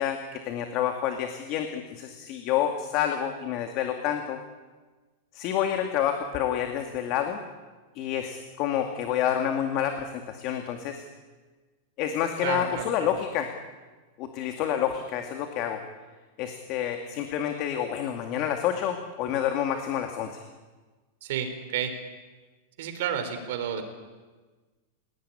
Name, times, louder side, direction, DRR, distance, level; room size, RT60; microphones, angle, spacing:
voice 1, 0.0-4.4 5.3-7.4 8.0-11.0 12.0-13.5 14.2-15.8 16.4-20.4, left 10 dB, 35° left, 5 dB, 2.2 m, -28 dB
voice 2, 12.4-12.9 21.2-21.9 22.8-23.8, right 8 dB, 55° right, 8 dB, 3.9 m, -30 dB
30.0 x 18.0 x 10.0 m, 1.3 s
supercardioid pair, 175°, 0 cm